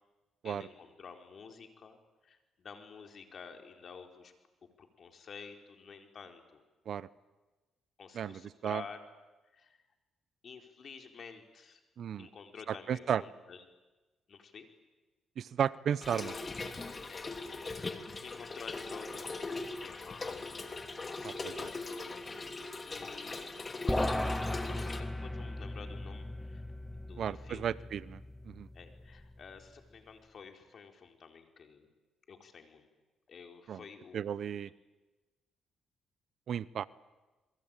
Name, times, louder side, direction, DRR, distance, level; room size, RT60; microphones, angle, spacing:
voice 1, 0.4-2.0 2.2-4.3 4.6-6.6 8.0-9.0 9.5-9.8 10.4-11.8 12.2-13.6 14.3-14.7 17.1-19.5 19.8-20.5 21.1-22.4 22.8-23.5 23.8-26.6 27.0-27.7 28.7-31.9 32.3-32.9 33.3-34.6, left 5 dB, 50° left, 5 dB, 4.2 m, -51 dB
voice 2, 8.1-8.8 12.0-12.3 12.9-13.2 15.4-16.4 21.2-21.5 27.2-28.2 28.5-28.7 33.7-33.8 34.1-34.7 36.5-36.8, right 8 dB, 60° right, 18 dB, 0.8 m, -34 dB
Trickle dribble / Fill (with liquid), 16.0-25.0, left 3 dB, 30° left, 2.7 m, -40 dB
sound 1, 23.9-29.4, left 1 dB, 5° left, 1.2 m, -37 dB
28.0 x 22.5 x 9.0 m, 1.2 s
cardioid pair, 90°, 0 cm